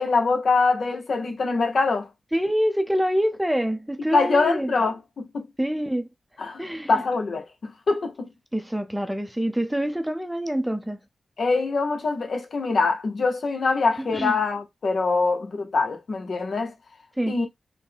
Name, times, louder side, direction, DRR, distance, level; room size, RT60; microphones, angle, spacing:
voice 1, 0.0-2.1 4.1-5.5 6.4-6.6 6.9-8.3 11.4-16.7 17.3-17.5, left 4 dB, 65° left, 0.9 m, -24 dB
voice 2, 2.3-4.7 5.6-6.1 6.6-6.9 8.5-11.0 14.1-14.4 17.2-17.4, equal, 5° right, 0.6 m, -26 dB
4.0 x 2.2 x 3.4 m
cardioid pair, 55°, 0 cm